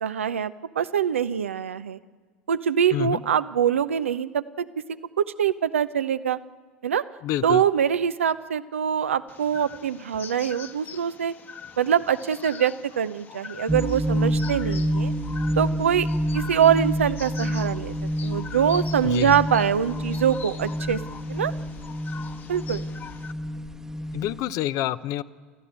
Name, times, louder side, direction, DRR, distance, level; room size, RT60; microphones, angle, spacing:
voice 1, 0.0-2.0 2.5-4.7 5.2-6.4 6.8-7.0 7.4-11.3 11.8-15.1 15.6-16.1 16.3-17.9 18.2-21.0 21.3-21.5 22.5-22.8, right 8 dB, 85° right, 11 dB, 0.8 m, -24 dB
voice 2, 2.9-3.2 7.2-7.6 19.0-19.4 24.1-25.2, left 13 dB, 50° left, 15 dB, 0.7 m, -27 dB
sound 1, 9.3-23.3, left 6 dB, 30° left, 1.3 m, -43 dB
sound 2, 13.7-24.4, equal, 5° right, 1.1 m, -28 dB
28.5 x 14.0 x 8.7 m, 1.5 s
hypercardioid pair, 80°, 7 cm